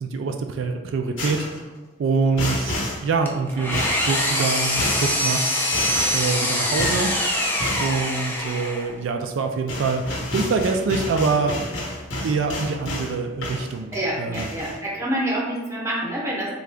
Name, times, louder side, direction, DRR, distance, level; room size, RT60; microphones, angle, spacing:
voice 1, 0.0-1.5 2.0-2.8 3.0-5.7 6.1-7.1 7.8-11.6 12.2-14.5, right 4 dB, 80° right, 5 dB, 0.3 m, -25 dB
sound 1, 1.2-1.6 2.4-3.0 3.7-4.1 4.8-5.1 5.7-6.2 6.8-7.1 7.6-7.9 9.3-9.4 9.7-13.1 13.4-14.0 14.3-14.8, left 1 dB, 90° left, 1.0 m, -29 dB
Engine, 3.3-9.0, left 1 dB, 10° left, 0.4 m, -24 dB
voice 2, 13.9-16.6, right 1 dB, 15° right, -4 dB, 0.8 m, -27 dB
3.7 x 2.3 x 3.3 m, 1.3 s
head